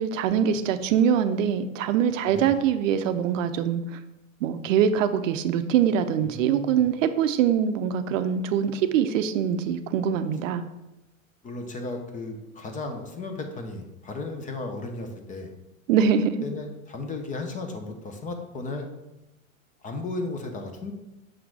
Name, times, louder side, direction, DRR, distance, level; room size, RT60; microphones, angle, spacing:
voice 1, 0.0-4.0 4.4-10.6 15.9-16.4, right 8 dB, 65° right, 10 dB, 0.6 m, -23 dB
voice 2, 2.3-2.6 6.2-6.8 11.4-15.5 16.4-18.9 19.8-20.9, left 2 dB, 20° left, 5 dB, 0.7 m, -35 dB
6.4 x 3.8 x 4.7 m, 0.95 s
supercardioid pair, 130°, 41 cm